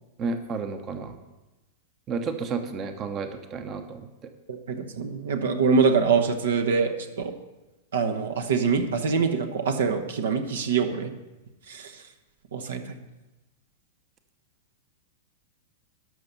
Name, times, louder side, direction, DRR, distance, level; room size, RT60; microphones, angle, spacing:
voice 1, 0.2-1.1 2.1-4.3, right 4 dB, 30° right, 8 dB, 0.9 m, -32 dB
voice 2, 4.5-7.3 7.9-11.1 11.7-12.0 12.5-13.0, right 5 dB, 70° right, 6 dB, 0.9 m, -24 dB
12.5 x 6.2 x 5.5 m, 1.1 s
figure-of-eight pair, 95°, 0 cm